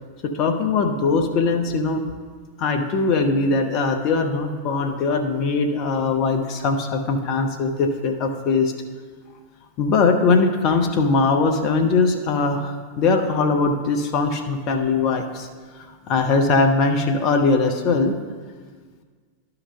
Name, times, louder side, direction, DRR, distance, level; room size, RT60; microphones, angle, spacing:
voice 1, 0.2-2.0 2.6-8.7 9.8-15.5 16.1-18.1, left 4 dB, 40° left, 5 dB, 0.6 m, -21 dB
11.0 x 3.9 x 5.4 m, 1.6 s
figure-of-eight pair, 90°, 0 cm